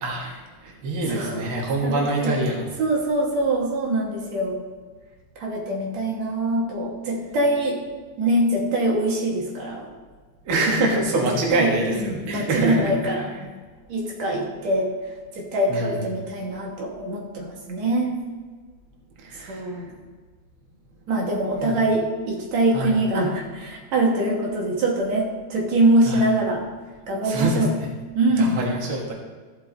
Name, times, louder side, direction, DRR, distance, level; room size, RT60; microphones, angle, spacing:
voice 1, 0.0-0.3 0.6-2.8 10.5-13.1 15.7-16.0 19.2-19.9 21.6-21.8 22.7-23.0 26.1-26.2 27.2-27.9 28.4-29.1, right 1 dB, 50° right, -2 dB, 2.0 m, -25 dB
voice 2, 1.1-1.4 1.8-2.4 2.8-4.6 5.4-7.8 8.2-9.9 11.3-13.5 13.9-14.9 15.3-18.1 19.5-19.9 21.1-26.6 27.1-27.7 28.1-28.6, right 1 dB, 70° right, -2 dB, 2.6 m, -23 dB
14.5 x 5.9 x 3.9 m, 1.5 s
omnidirectional pair, 3.4 m